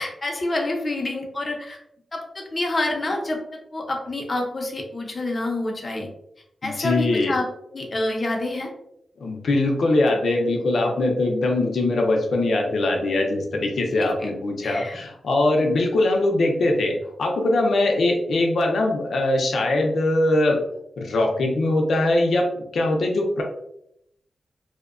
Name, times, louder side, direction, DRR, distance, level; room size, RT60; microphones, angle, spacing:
voice 1, 0.0-1.8 2.1-6.1 6.6-7.4 7.7-8.7 14.0-14.3 14.6-15.0, left 2 dB, 35° left, 1 dB, 0.6 m, -27 dB
voice 2, 6.6-7.3 9.2-20.6 21.0-23.4, left 2 dB, 80° left, 1 dB, 0.5 m, -22 dB
2.7 x 2.1 x 2.4 m, 0.76 s
wide cardioid pair, 115°, 0 cm